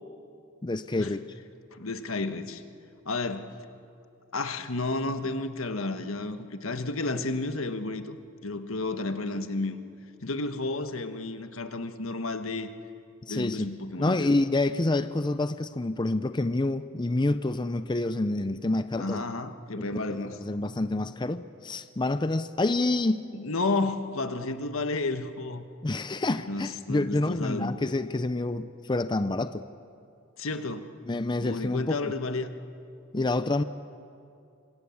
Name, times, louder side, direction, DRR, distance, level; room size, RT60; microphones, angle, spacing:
voice 1, 0.6-1.2 13.2-13.7 14.0-19.2 19.8-23.3 25.8-29.6 31.1-32.1 33.1-33.6, left 2 dB, 20° left, 11 dB, 0.5 m, -28 dB
voice 2, 1.7-2.6 3.0-3.5 4.3-8.2 8.4-9.8 10.2-12.7 13.3-14.3 19.0-20.3 23.3-25.6 26.5-27.8 30.4-30.8 31.4-32.5, left 2 dB, 80° left, 8 dB, 1.4 m, -31 dB
26.5 x 25.0 x 7.2 m, 2.5 s
head